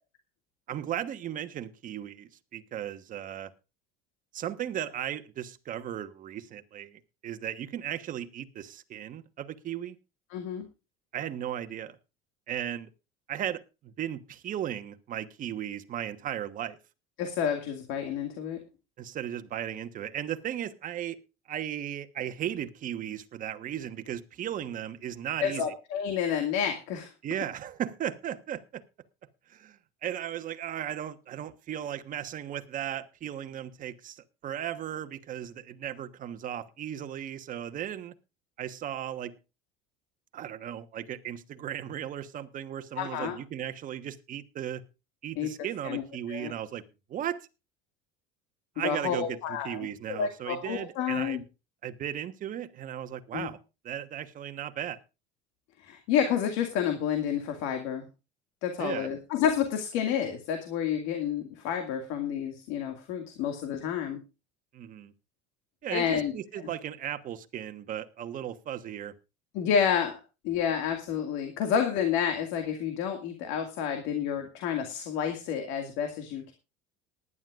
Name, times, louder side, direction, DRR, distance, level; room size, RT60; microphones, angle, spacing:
voice 1, 0.7-3.5 4.3-10.0 11.1-12.0 12.5-12.9 13.3-16.8 19.0-21.2 21.5-25.7 27.2-28.8 29.5-38.1 38.6-39.3 40.3-44.8 45.2-46.8 47.1-47.5 48.8-51.4 51.8-53.6 53.8-55.0 58.8-59.1 64.7-65.1 65.8-69.1, right 10 dB, 40° right, 10 dB, 1.2 m, -36 dB
voice 2, 10.3-10.7 17.2-18.6 25.4-27.1 43.0-43.4 45.4-45.5 45.8-46.0 46.3-46.5 48.8-51.4 53.3-53.5 55.8-58.1 58.6-64.2 65.9-66.3 66.6-66.7 69.5-70.2 70.4-76.5, left 8 dB, 70° left, 5 dB, 2.1 m, -30 dB
19.5 x 11.0 x 2.5 m, 0.29 s
supercardioid pair, 120°, 21 cm